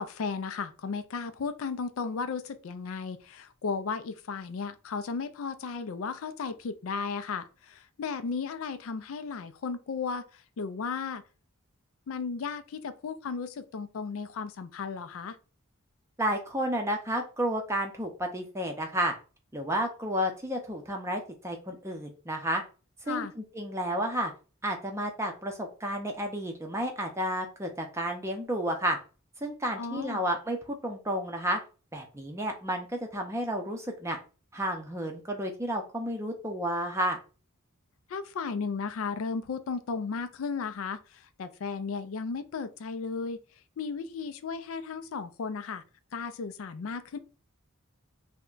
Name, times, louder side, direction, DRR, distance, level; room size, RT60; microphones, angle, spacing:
voice 1, 0.0-10.2 10.6-11.2 12.1-15.4 23.1-23.3 29.8-30.2 38.1-43.4 43.8-45.8 46.1-47.2, left 5 dB, 70° left, 0.4 m, -35 dB
voice 2, 16.2-19.1 19.5-22.6 23.1-24.3 24.6-29.0 29.4-31.6 31.9-34.2 34.5-37.2, equal, 15° right, 0.6 m, -31 dB
3.4 x 2.1 x 3.7 m
head